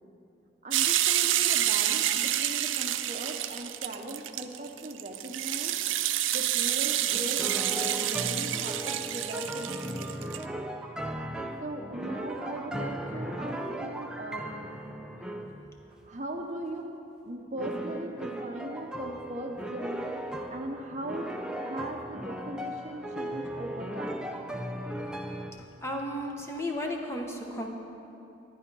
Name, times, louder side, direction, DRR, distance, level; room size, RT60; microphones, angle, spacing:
voice 1, 0.6-5.8 6.3-10.6 11.6-14.7 16.0-16.9 17.3-20.1 20.5-24.3, right 1 dB, 40° right, 3 dB, 0.8 m, -39 dB
sound 1, 0.7-10.4, right 12 dB, 90° right, 0.5 m, -28 dB
sound 2, 7.1-15.5 17.6-25.5, right 1 dB, 5° right, 0.5 m, -37 dB
voice 2, 25.8-27.7, left 1 dB, 15° left, 1 dB, 0.9 m, -34 dB
11.5 x 10.0 x 5.4 m, 2.8 s
head